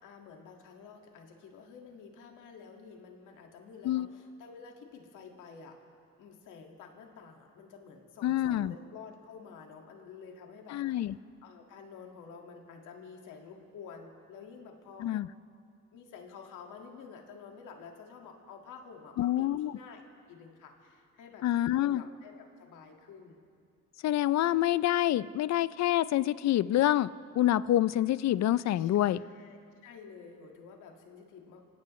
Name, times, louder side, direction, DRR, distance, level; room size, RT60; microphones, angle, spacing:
voice 1, 0.0-5.8 6.2-11.2 11.4-15.1 15.9-21.5 21.7-23.4 28.8-31.6, left 5 dB, 90° left, 2 dB, 2.0 m, -50 dB
voice 2, 8.2-8.7 10.7-11.1 15.0-15.3 19.2-19.7 21.4-22.0 24.0-27.1 27.4-29.2, left 13 dB, 60° left, 17 dB, 0.5 m, -27 dB
25.5 x 17.0 x 3.2 m, 2.3 s
cardioid pair, 90°, 30 cm